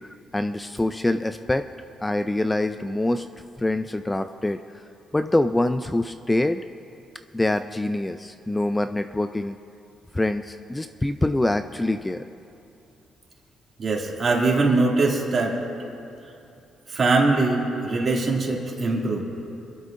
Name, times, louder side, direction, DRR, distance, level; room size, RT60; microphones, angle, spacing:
voice 1, 0.3-1.6 2.0-3.3 3.6-4.6 5.1-6.6 7.3-9.6 10.1-12.2, left 1 dB, 15° left, 9 dB, 0.3 m, -25 dB
voice 2, 13.8-15.6 16.9-19.2, right 3 dB, 45° right, -2 dB, 2.5 m, -22 dB
26.5 x 12.0 x 2.6 m, 2.7 s
cardioid pair, 90°, 0 cm